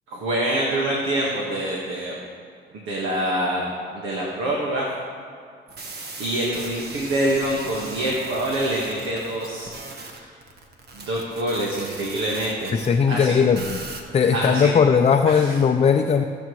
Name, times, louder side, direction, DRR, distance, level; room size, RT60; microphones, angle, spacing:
voice 1, 0.1-2.2 2.7-4.9 6.2-10.3 10.9-13.4 14.3-14.7 15.3-15.5, right 1 dB, 85° right, -3 dB, 1.6 m, -26 dB
sound 1, 5.7-12.9 13.5-14.0, right 3 dB, 55° right, 1.4 m, -38 dB
voice 2, 12.7-13.8 14.1-16.2, left 6 dB, 35° left, 5 dB, 0.5 m, -18 dB
17.0 x 7.1 x 3.2 m, 2.2 s
cardioid pair, 90°, 20 cm